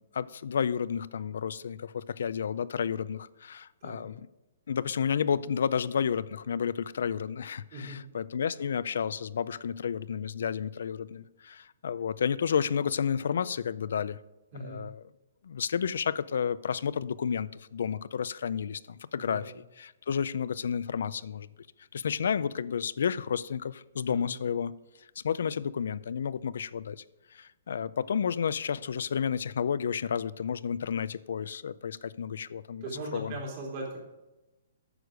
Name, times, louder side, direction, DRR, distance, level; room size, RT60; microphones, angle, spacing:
voice 1, 0.0-4.3 4.7-14.2 14.6-15.0 15.4-19.5 19.8-21.5 21.9-24.7 25.2-27.0 27.3-32.8 33.1-33.3, left 7 dB, 75° left, 18 dB, 0.4 m, -31 dB
voice 2, 7.7-8.0 14.5-14.9 19.2-19.6 24.1-24.5 32.8-34.0, right 2 dB, 40° right, -2 dB, 3.2 m, -39 dB
9.7 x 6.5 x 5.1 m, 1.0 s
hypercardioid pair, 160°, 0 cm